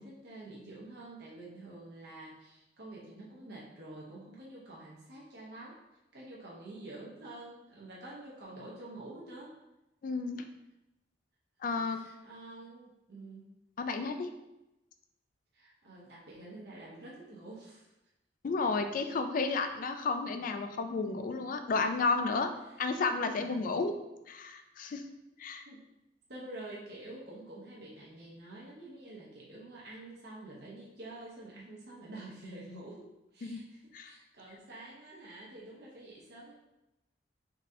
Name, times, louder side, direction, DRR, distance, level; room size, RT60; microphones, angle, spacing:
voice 1, 0.0-5.8 6.1-9.6 11.9-13.5 15.5-17.9 22.6-22.8 23.4-23.6 25.6-25.8 26.3-36.5, right 2 dB, 60° right, -5 dB, 0.8 m, -48 dB
voice 2, 10.0-10.4 11.6-12.0 13.8-14.3 18.4-22.5 22.8-23.9 24.3-25.0 25.4-25.6 33.4-33.6 33.9-34.1, left 4 dB, 50° left, 7 dB, 0.3 m, -32 dB
3.9 x 3.7 x 2.7 m, 0.94 s
head